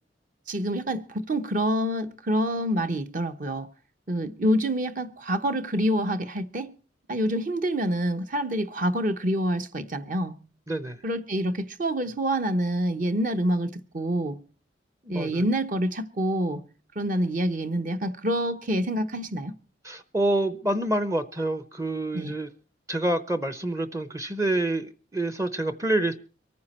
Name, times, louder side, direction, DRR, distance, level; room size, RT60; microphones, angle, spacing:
voice 1, 0.5-3.7 4.1-6.7 7.1-10.3 11.0-14.4 15.1-16.6 17.0-19.5 22.1-22.3, equal, 45° right, 1.0 m, -27 dB
voice 2, 10.7-11.0 15.0-15.4 19.8-22.5 22.9-26.2, right 1 dB, 15° right, 0.7 m, -27 dB
24.0 x 9.5 x 4.3 m
head